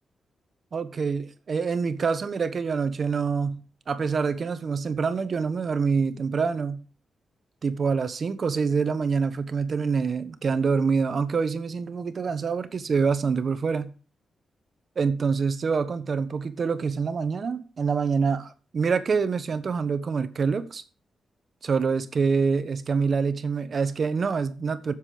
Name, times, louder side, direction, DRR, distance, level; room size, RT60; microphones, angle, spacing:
voice 1, 0.7-6.8 7.6-13.9 15.0-20.8 21.6-24.9, right 5 dB, 50° right, 1.2 m, -26 dB
8.3 x 7.5 x 7.7 m
cardioid pair, 100°, 0 cm